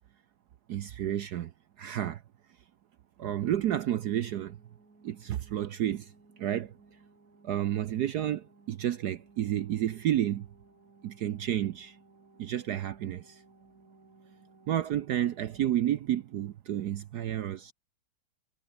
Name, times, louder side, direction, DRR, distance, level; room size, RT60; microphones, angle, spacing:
voice 1, 0.7-1.5 1.8-2.2 3.2-4.6 5.0-6.1 6.4-6.7 7.4-10.5 11.0-12.0 12.4-13.4 14.7-17.7, right 11 dB, 65° right, 1.0 m, -31 dB
sound 1, 3.4-15.8, right 3 dB, 40° right, 4.4 m, -60 dB
omnidirectional pair, 2.4 m